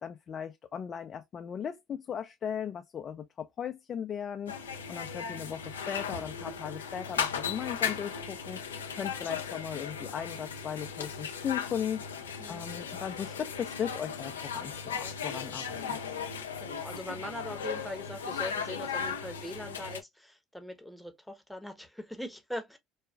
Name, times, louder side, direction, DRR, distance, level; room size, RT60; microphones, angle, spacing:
voice 1, 0.0-4.6 4.9-8.6 8.9-12.0 12.5-16.0, left 8 dB, 40° left, 0.5 m, -37 dB
sound 1, 4.5-20.0, left 6 dB, 90° left, 0.5 m, -37 dB
voice 2, 16.6-22.8, left 1 dB, ahead, 1.0 m, -41 dB
4.8 x 2.3 x 2.3 m
hypercardioid pair, 70°, 0 cm